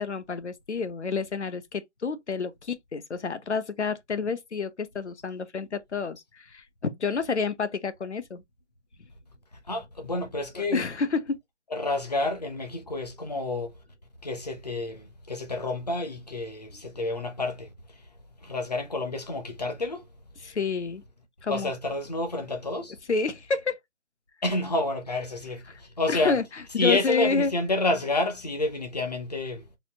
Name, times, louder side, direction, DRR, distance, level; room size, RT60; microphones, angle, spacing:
voice 1, 0.0-8.4 10.7-11.4 20.4-21.0 21.4-21.7 23.1-23.8 26.1-26.4 26.7-27.5, left 5 dB, 70° left, 0.8 m, -29 dB
voice 2, 9.7-10.9 11.7-13.8 14.2-18.1 18.4-20.1 21.5-23.0 24.4-26.4 26.8-29.8, left 2 dB, 35° left, 0.7 m, -29 dB
4.1 x 2.3 x 2.8 m
figure-of-eight pair, 165°, 36 cm